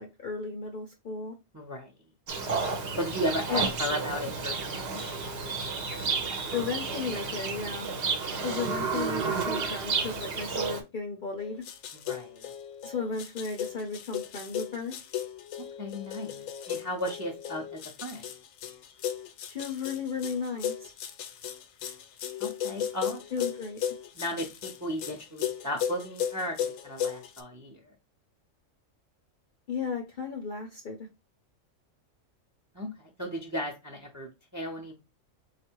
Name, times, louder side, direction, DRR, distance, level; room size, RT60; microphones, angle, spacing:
voice 1, 0.0-1.4 3.5-3.6 6.5-7.9 8.4-11.6 12.8-14.9 19.5-20.9 23.3-23.8 29.7-31.0, left 5 dB, 50° left, 2 dB, 0.6 m, -34 dB
voice 2, 1.5-1.9 3.0-5.0 11.9-12.5 15.8-18.3 22.4-23.2 24.1-27.9 32.7-35.0, equal, 20° right, 2 dB, 0.6 m, -35 dB
Livestock farm animals working animals, 2.3-10.8, right 4 dB, 55° right, 0.9 m, -31 dB
sound 1, 11.4-27.4, left 9 dB, 80° left, 1.0 m, -35 dB
3.6 x 2.5 x 4.4 m, 0.26 s
omnidirectional pair, 1.4 m